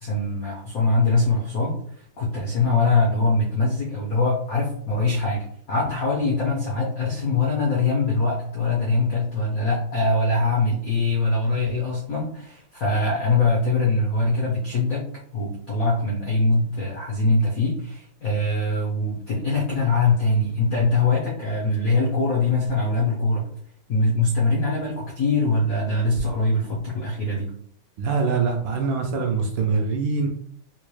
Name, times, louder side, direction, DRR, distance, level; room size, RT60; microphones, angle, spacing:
voice 1, 0.0-15.1 15.3-23.5 23.9-27.5, left 3 dB, 75° left, -4 dB, 0.8 m, -23 dB
voice 2, 28.0-30.3, right 5 dB, 75° right, 2 dB, 1.2 m, -23 dB
4.1 x 2.3 x 3.1 m, 0.65 s
omnidirectional pair, 2.4 m